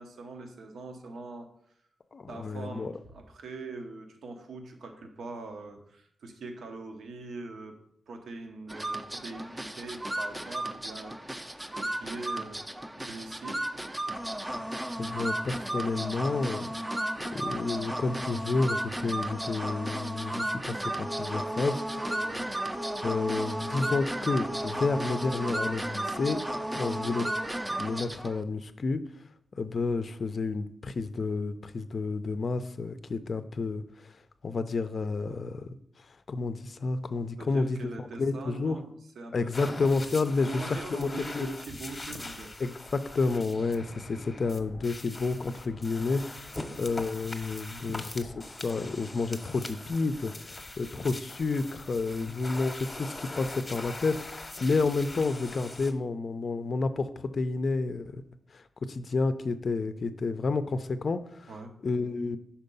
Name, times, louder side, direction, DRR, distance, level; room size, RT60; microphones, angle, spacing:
voice 1, 0.0-1.5 2.3-7.8 8.1-11.2 11.7-12.6 13.0-13.6 22.2-22.5 26.8-27.2 37.4-39.8 40.2-42.6 46.5-46.8 52.1-52.4 61.5-61.7, right 3 dB, 80° right, 5 dB, 0.9 m, -42 dB
voice 2, 2.1-2.9 15.0-16.7 17.3-22.0 23.0-26.4 26.7-27.3 27.8-29.0 29.5-34.1 34.4-35.7 36.3-38.8 39.3-41.5 42.6-46.5 46.8-58.2 58.5-61.5 61.8-62.4, left 3 dB, 50° left, 11 dB, 0.4 m, -30 dB
sound 1, 8.7-28.4, right 1 dB, 15° right, 0.5 m, -34 dB
sound 2, 39.5-55.9, left 2 dB, 25° left, 0.8 m, -42 dB
5.4 x 4.3 x 5.3 m, 0.70 s
cardioid pair, 80°, 0 cm